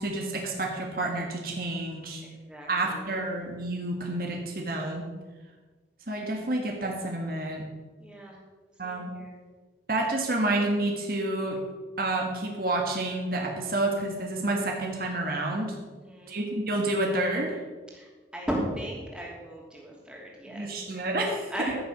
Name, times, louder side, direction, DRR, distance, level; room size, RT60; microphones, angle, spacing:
voice 1, 0.0-2.2 2.7-5.1 6.1-7.6 8.8-9.1 9.9-11.6 12.0-15.7 16.3-17.6 20.5-21.7, right 2 dB, 50° right, 1 dB, 1.7 m, -29 dB
voice 2, 2.5-3.1 8.0-8.4 8.8-9.4 15.9-16.4 17.9-20.8 21.5-21.7, equal, 5° right, -3 dB, 2.8 m, -36 dB
14.5 x 7.0 x 6.2 m, 1.3 s
head